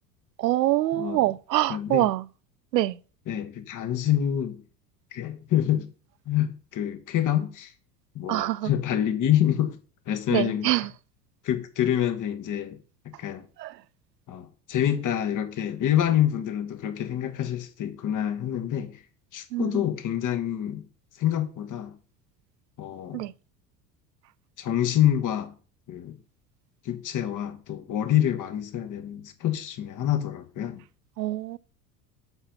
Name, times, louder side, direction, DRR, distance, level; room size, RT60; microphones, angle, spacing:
voice 1, 0.4-2.2 2.7-3.0 8.3-8.7 10.3-10.9 13.6-13.7 19.5-19.7 23.1-23.3 31.2-31.6, right 15 dB, 80° right, 0.6 m, -25 dB
voice 2, 0.9-1.3 1.7-2.1 3.3-4.6 5.1-5.9 6.2-7.7 8.1-9.8 10.1-10.9 11.4-12.8 13.2-13.4 14.3-19.0 19.3-20.9 21.2-22.0 22.8-23.2 24.6-25.5 25.9-26.1 26.8-30.8, left 11 dB, 40° left, 1.6 m, -27 dB
8.0 x 5.7 x 5.7 m
figure-of-eight pair, 75°, 49 cm